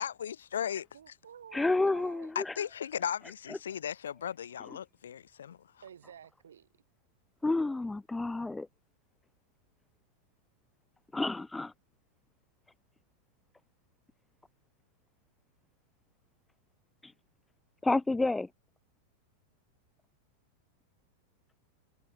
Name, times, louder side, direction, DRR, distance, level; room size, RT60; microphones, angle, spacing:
voice 1, 0.0-0.9 2.4-5.6, left 9 dB, 65° left, 0.6 m, -36 dB
voice 2, 0.9-2.3 5.8-6.7, right 8 dB, 65° right, 4.3 m, -51 dB
voice 3, 1.5-2.5 3.5-3.6 7.4-8.7 11.1-11.7 17.0-17.1 17.8-18.5, left 2 dB, 10° left, 0.7 m, -30 dB
figure-of-eight pair, 90°, 0 cm